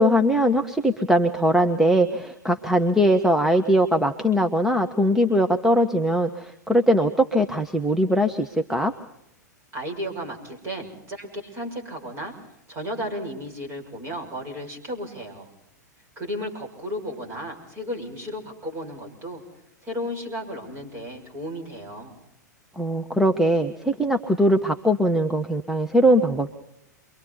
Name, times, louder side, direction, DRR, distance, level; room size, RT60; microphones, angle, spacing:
voice 1, 0.0-8.9 22.8-26.5, equal, 5° right, 4 dB, 1.0 m, -21 dB
voice 2, 9.7-12.4 12.7-15.5 16.1-19.4 19.8-22.1, equal, 25° right, 1 dB, 6.5 m, -34 dB
29.0 x 24.0 x 4.1 m, 0.80 s
figure-of-eight pair, 100°, 10 cm